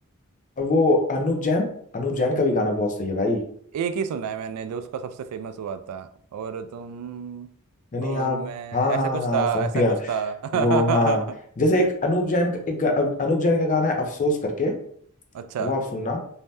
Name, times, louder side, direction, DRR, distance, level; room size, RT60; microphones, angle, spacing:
voice 1, 0.6-1.7 1.9-3.4 7.9-8.4 8.7-9.9 10.5-11.2 11.6-14.7 15.6-16.2, left 2 dB, 35° left, 3 dB, 0.5 m, -23 dB
voice 2, 3.7-7.5 8.0-11.2 11.8-11.9 15.3-15.7, right 7 dB, 85° right, 12 dB, 0.3 m, -29 dB
2.7 x 2.1 x 3.3 m, 0.62 s
head